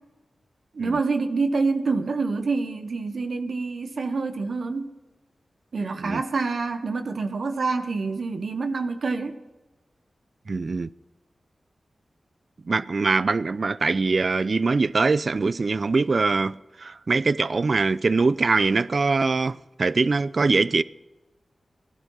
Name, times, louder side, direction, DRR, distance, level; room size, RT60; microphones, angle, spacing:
voice 1, 0.7-4.9 5.7-9.4, right 4 dB, 70° right, 1.1 m, -27 dB
voice 2, 10.5-10.9 12.7-20.8, right 3 dB, 55° right, 0.4 m, -23 dB
16.0 x 12.0 x 5.6 m
wide cardioid pair, 70°, 0 cm